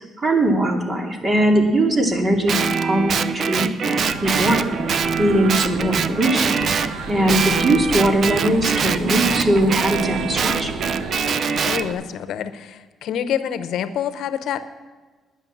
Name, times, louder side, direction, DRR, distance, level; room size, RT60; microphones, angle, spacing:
voice 1, 0.2-4.6 4.9-10.7, right 1 dB, 35° right, 2 dB, 2.4 m, -20 dB
Guitar, 2.5-6.9 7.3-11.8, right 6 dB, 55° right, 0.6 m, -23 dB
sound 1, 4.0-11.9, right 3 dB, 85° right, 1.2 m, -32 dB
voice 2, 7.1-7.6 11.6-14.7, left 9 dB, 80° left, 12 dB, 0.8 m, -27 dB
10.5 x 9.9 x 7.2 m, 1.4 s
cardioid pair, 90°, 0 cm